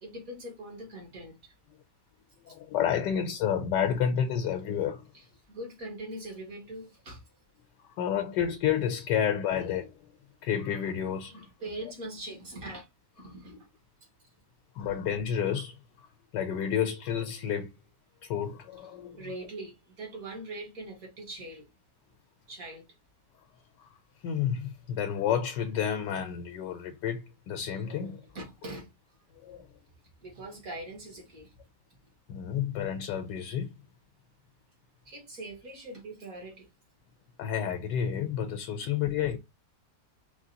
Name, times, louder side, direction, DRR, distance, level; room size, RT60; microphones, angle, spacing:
voice 1, 0.0-1.5 2.5-2.6 5.1-5.2 5.5-7.3 11.3-12.9 13.2-13.7 14.0-14.1 19.2-21.7 22.5-22.9 28.3-28.9 30.2-31.5 35.1-36.7, right 1 dB, 55° right, 2.2 m, -42 dB
voice 2, 2.5-5.1 7.8-10.1 10.4-11.5 14.8-17.7 18.2-19.2 23.8-23.9 24.2-28.2 29.4-29.7 32.3-33.8 37.4-39.4, left 8 dB, 85° left, 1.3 m, -30 dB
4.8 x 3.1 x 2.8 m
omnidirectional pair, 1.8 m